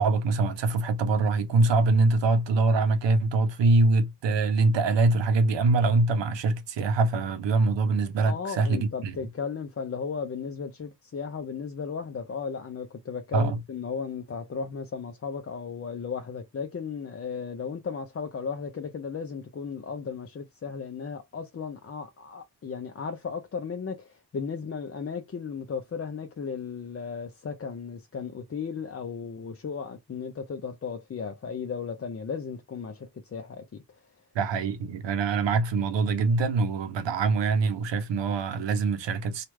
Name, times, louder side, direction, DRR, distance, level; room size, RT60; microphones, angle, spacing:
voice 1, 0.0-9.2 13.3-13.6 34.3-39.4, right 3 dB, 90° right, 0.7 m, -24 dB
voice 2, 8.2-33.8, left 6 dB, 35° left, 0.5 m, -35 dB
3.1 x 2.4 x 3.1 m
cardioid pair, 70°, 42 cm